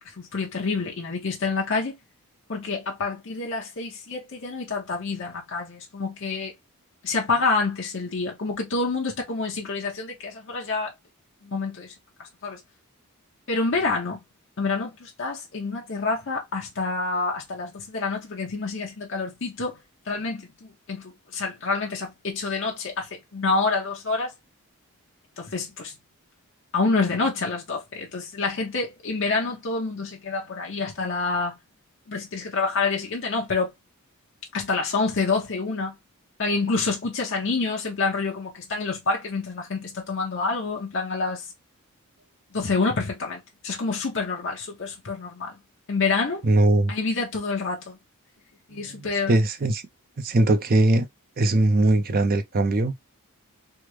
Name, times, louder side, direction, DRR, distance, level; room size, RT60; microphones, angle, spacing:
voice 1, 0.0-2.0 2.5-6.5 7.0-10.9 11.4-11.9 12.2-12.6 13.5-14.2 14.6-19.8 20.1-24.3 25.4-25.9 26.7-31.6 32.1-33.7 34.5-35.9 36.4-41.5 42.5-45.6 45.9-46.4 46.9-48.0 48.7-49.4, left 4 dB, 55° left, 0.8 m, -27 dB
voice 2, 46.4-46.9 48.8-49.8 50.2-51.1 51.4-52.9, right 2 dB, 40° right, 0.5 m, -21 dB
3.4 x 2.1 x 3.0 m
head